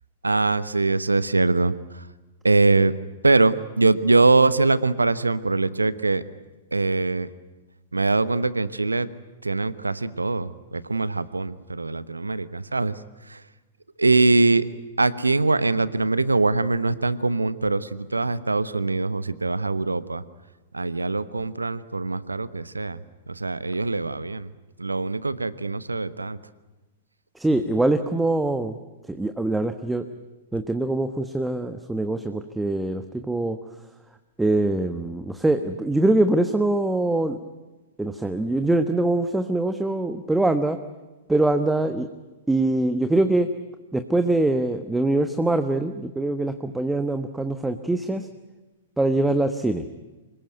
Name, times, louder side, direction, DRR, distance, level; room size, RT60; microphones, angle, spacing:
voice 1, 0.2-2.0 2.4-2.9 3.2-6.2 6.7-7.3 7.9-9.1 9.4-13.0 13.3-13.4 14.0-14.7 15.0-20.2 20.7-23.0 23.3-24.5 24.8-26.4, right 3 dB, 85° right, 16 dB, 1.1 m, -22 dB
voice 2, 27.4-28.8 29.1-30.1 30.5-33.6 34.4-37.4 38.0-40.8 41.3-42.1 42.5-43.5 43.9-48.3 49.0-49.8, right 2 dB, 5° right, 8 dB, 1.2 m, -23 dB
25.5 x 21.5 x 9.3 m, 1.2 s
figure-of-eight pair, 110°, 0 cm